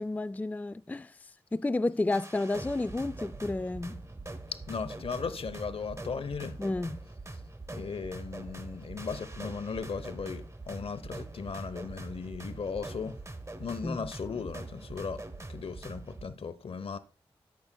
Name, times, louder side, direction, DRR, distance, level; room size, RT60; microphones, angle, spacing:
voice 1, 0.0-4.0 6.6-7.0 13.8-14.0, left 2 dB, 15° left, 0.3 m, -31 dB
sound 1, 2.1-16.3, right 2 dB, 30° right, 1.1 m, -43 dB
voice 2, 4.5-6.6 7.7-13.2 13.6-15.2 15.5-17.0, left 5 dB, 65° left, 0.8 m, -37 dB
13.5 x 7.1 x 2.2 m
cardioid pair, 45°, 10 cm